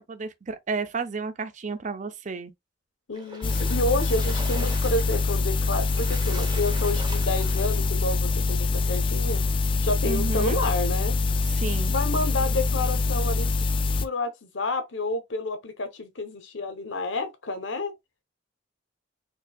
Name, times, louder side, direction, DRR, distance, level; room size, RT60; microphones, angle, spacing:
voice 1, 0.1-2.5 10.0-10.6 11.5-11.9, right 4 dB, 40° right, 0.5 m, -32 dB
voice 2, 3.1-9.4 9.8-11.1 11.9-13.7 14.0-17.9, left 2 dB, 85° left, 0.9 m, -29 dB
Splash splatter, 3.1-8.0, right 2 dB, 25° right, 0.9 m, -42 dB
sound 1, 3.4-14.1, left 3 dB, 25° left, 0.3 m, -25 dB
4.5 x 2.7 x 2.3 m
head